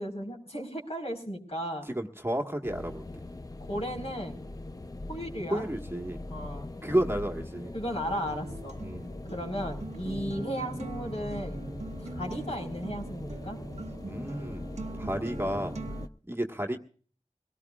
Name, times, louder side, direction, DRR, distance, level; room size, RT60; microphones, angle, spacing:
voice 1, 0.0-1.9 3.6-4.4 5.1-5.7 6.3-6.7 7.7-8.8 9.3-11.6 12.0-13.6, equal, 55° left, 2 dB, 4.5 m, -35 dB
voice 2, 1.9-3.0 5.5-6.2 6.8-7.7 8.8-9.1 14.1-14.7 15.0-15.7 16.3-16.8, right 1 dB, 20° right, 2 dB, 1.5 m, -31 dB
sound 1, 2.6-16.1, left 2 dB, 30° left, 0.7 m, -41 dB
Acoustic guitar, 8.1-16.1, right 2 dB, 65° right, 1.0 m, -41 dB
24.0 x 18.0 x 2.4 m, 0.44 s
wide cardioid pair, 65°, 13 cm